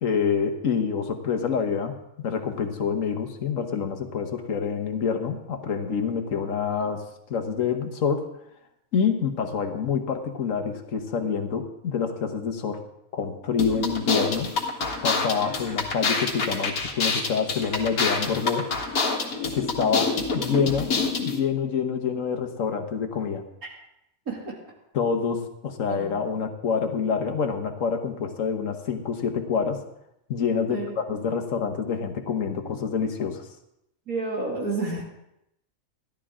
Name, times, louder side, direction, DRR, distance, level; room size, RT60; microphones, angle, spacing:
voice 1, 0.0-8.2 8.9-12.8 13.1-14.5 15.0-18.7 19.5-20.1 20.3-20.9 21.2-23.4 24.9-29.8 30.3-33.4, left 6 dB, 70° left, 5 dB, 1.5 m, -27 dB
sound 1, 13.6-21.4, left 4 dB, 85° left, 2.0 m, -27 dB
voice 2, 34.1-35.0, right 3 dB, 85° right, -2 dB, 3.1 m, -30 dB
14.0 x 11.5 x 3.7 m, 0.81 s
omnidirectional pair, 1.5 m